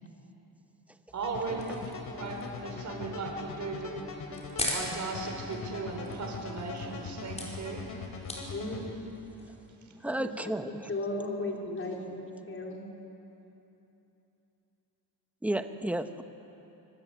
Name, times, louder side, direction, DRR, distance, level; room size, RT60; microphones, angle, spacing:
sound 1, 1.1-9.7, left 1 dB, 15° left, 4.7 m, -42 dB
voice 1, 1.1-3.9 4.7-7.9, right 3 dB, 45° right, 2 dB, 4.9 m, -37 dB
sound 2, 1.2-8.8, left 4 dB, 60° left, 3.7 m, -41 dB
voice 2, 8.5-9.0 10.0-10.3 10.7-12.9, left 2 dB, 35° left, 0 dB, 3.8 m, -36 dB
voice 3, 10.0-10.9 15.4-16.2, right 1 dB, 5° right, 7 dB, 1.0 m, -32 dB
25.0 x 24.5 x 9.1 m, 3.0 s
wide cardioid pair, 160°, 39 cm